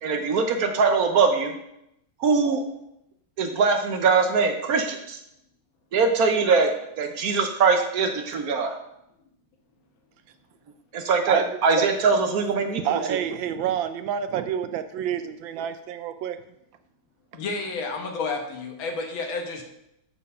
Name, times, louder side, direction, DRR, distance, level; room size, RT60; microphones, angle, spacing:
voice 1, 0.0-1.5 2.2-2.6 3.4-5.2 5.9-6.7 7.0-8.7 10.9-13.0, right 4 dB, 60° right, 6 dB, 1.0 m, -22 dB
voice 2, 11.3-11.9 12.8-16.4, right 9 dB, 75° right, 10 dB, 1.3 m, -28 dB
voice 3, 17.3-19.6, left 3 dB, 70° left, 4 dB, 1.9 m, -30 dB
8.5 x 4.5 x 5.5 m, 0.81 s
omnidirectional pair, 2.3 m